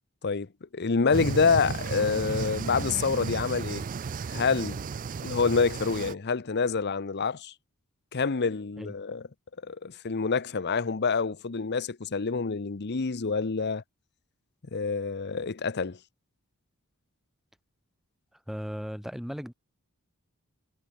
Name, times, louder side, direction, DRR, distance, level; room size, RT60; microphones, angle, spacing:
voice 1, 0.2-3.8 4.3-4.8 5.2-7.5 8.1-9.3 9.6-13.8 14.7-16.0, left 5 dB, 50° left, 0.8 m, -27 dB
sound 1, 1.1-6.1, right 5 dB, 35° right, 0.4 m, -34 dB
voice 2, 18.5-19.5, equal, ahead, 4.9 m, -36 dB
head